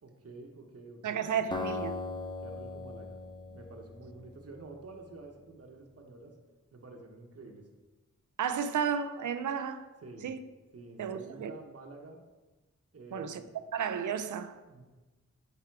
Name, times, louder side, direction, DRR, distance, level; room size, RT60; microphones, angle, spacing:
voice 1, 0.0-1.5 2.4-3.2 3.5-6.3 6.7-7.7 10.0-10.3 10.7-12.2 12.9-13.4 14.7-14.8, right 3 dB, 50° right, 1.1 m, -49 dB
voice 2, 1.0-2.0 8.4-9.9 10.2-10.4 11.0-11.5 13.1-13.4 13.7-14.6, right 7 dB, 80° right, 0.5 m, -32 dB
Acoustic guitar, 1.5-4.7, left 3 dB, 15° left, 0.6 m, -39 dB
8.2 x 3.6 x 4.7 m
cardioid pair, 60°, 30 cm